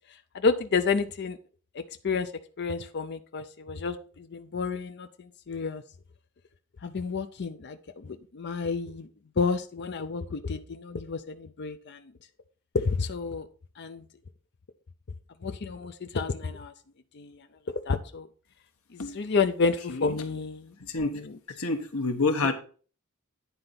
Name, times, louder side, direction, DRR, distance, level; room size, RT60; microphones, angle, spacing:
voice 1, 0.3-1.4 1.7-2.3 2.6-5.8 6.8-9.1 9.4-12.0 12.7-13.5 13.8-14.0 15.4-16.7 17.1-17.4 17.7-18.3 18.9-21.3, left 4 dB, 50° left, 8 dB, 0.5 m, -30 dB
voice 2, 20.8-21.2 21.5-22.5, left 3 dB, 75° left, 6 dB, 1.3 m, -28 dB
9.7 x 3.9 x 5.7 m, 0.40 s
head